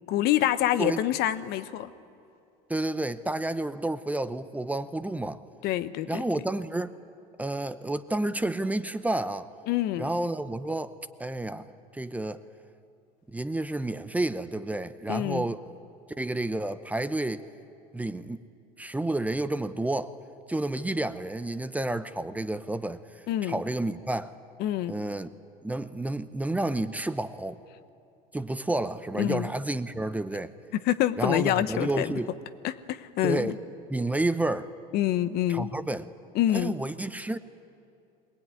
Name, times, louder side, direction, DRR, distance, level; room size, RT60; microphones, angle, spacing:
voice 1, 0.1-1.9 5.6-6.2 9.7-10.1 15.1-15.4 23.3-23.6 24.6-24.9 29.2-29.5 30.8-32.1 32.6-33.5 34.9-35.7 36.3-36.7, left 13 dB, 60° left, 0.9 m, -26 dB
voice 2, 2.7-5.4 6.1-6.9 7.4-9.5 10.0-11.7 11.9-12.4 13.3-15.6 16.2-17.5 17.9-18.4 18.8-20.1 20.5-23.0 23.4-24.3 24.9-25.3 25.6-27.6 28.3-30.5 31.2-32.4 33.2-33.6 33.9-34.7 35.5-36.1 36.5-37.4, right 2 dB, 10° right, 0.7 m, -30 dB
22.5 x 19.0 x 9.5 m
supercardioid pair, 110°, 18 cm